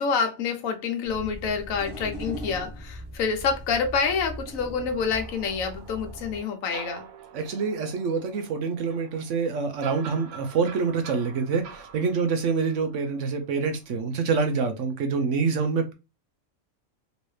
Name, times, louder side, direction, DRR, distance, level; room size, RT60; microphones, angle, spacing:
voice 1, 0.0-7.0, left 5 dB, 75° left, 1.1 m, -27 dB
sound 1, 1.0-6.4, equal, 15° right, 1.4 m, -39 dB
sound 2, 5.1-13.9, right 6 dB, 90° right, 1.1 m, -46 dB
voice 2, 7.3-15.9, right 5 dB, 70° right, 0.8 m, -26 dB
3.1 x 2.8 x 3.1 m
omnidirectional pair, 1.5 m